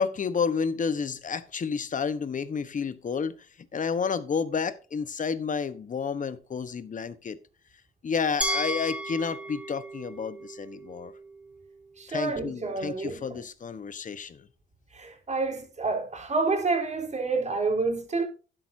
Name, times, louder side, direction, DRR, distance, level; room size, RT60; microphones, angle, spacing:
voice 1, 0.0-3.3 3.7-7.4 8.0-11.1 12.1-14.5, left 5 dB, 40° left, 1.1 m, -30 dB
Glass, 8.4-11.3, right 1 dB, 5° right, 3.8 m, -34 dB
voice 2, 12.0-13.4 14.9-18.2, right 3 dB, 35° right, 3.9 m, -29 dB
12.0 x 10.5 x 2.7 m
cardioid pair, 90°, 20 cm